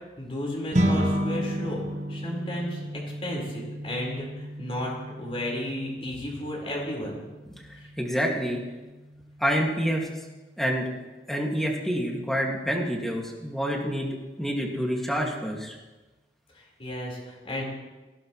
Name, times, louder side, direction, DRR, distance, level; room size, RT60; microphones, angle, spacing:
voice 1, 0.2-1.8 2.1-4.9 5.2-7.2 16.5-17.6, left 1 dB, 35° left, -3 dB, 4.7 m, -33 dB
sound 1, 0.7-10.2, equal, 40° right, 1.5 m, -32 dB
voice 2, 8.0-8.6 9.4-10.1 10.6-10.9 11.3-14.1 14.4-15.7, equal, ahead, -1 dB, 2.2 m, -27 dB
21.0 x 16.5 x 3.2 m, 1.2 s
head